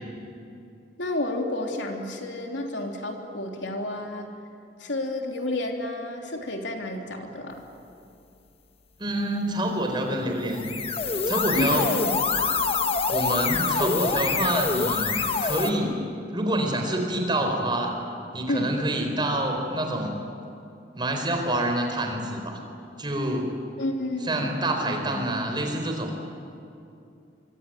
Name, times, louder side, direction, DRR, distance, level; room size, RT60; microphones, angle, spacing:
voice 1, 1.0-4.3 4.8-7.6 11.6-12.2 18.5-18.7 23.8-24.5 24.9-25.3, left 1 dB, 80° left, 2 dB, 3.3 m, -30 dB
voice 2, 9.0-10.7 11.3-11.9 13.1-16.0 16.3-18.0 18.3-20.2 21.0-22.6 23.0-23.5 24.2-26.1, right 1 dB, 25° right, 3 dB, 4.4 m, -27 dB
sound 1, 10.5-15.7, left 5 dB, 30° left, 1.3 m, -25 dB
25.0 x 24.0 x 9.3 m, 2.6 s
head